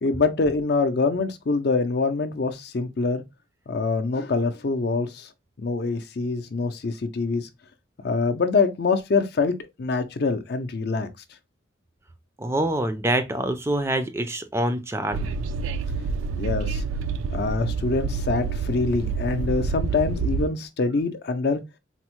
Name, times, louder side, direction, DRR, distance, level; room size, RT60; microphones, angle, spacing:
voice 1, 0.0-3.2 3.7-5.3 5.6-7.5 8.0-11.1 16.4-16.8 17.3-21.6, left 4 dB, 55° left, 0.5 m, -25 dB
voice 2, 12.4-15.3, right 1 dB, 15° right, 0.4 m, -25 dB
Train, 15.1-20.5, right 4 dB, 85° right, 0.3 m, -28 dB
4.1 x 2.0 x 2.9 m
head